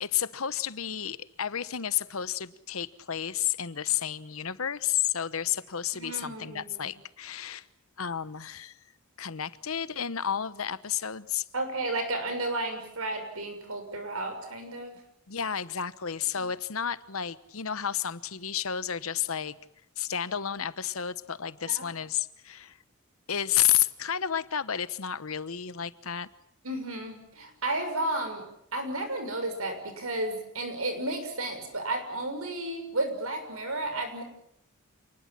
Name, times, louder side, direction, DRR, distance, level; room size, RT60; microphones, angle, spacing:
voice 1, 0.0-7.6 8.0-8.8 9.2-11.4 15.3-19.6 20.0-22.8 23.3-26.3, left 9 dB, 75° left, 15 dB, 1.1 m, -31 dB
voice 2, 5.9-6.9 11.5-14.9 21.7-21.9 26.6-34.2, right 2 dB, 80° right, 7 dB, 6.4 m, -33 dB
28.0 x 20.0 x 7.6 m, 0.72 s
head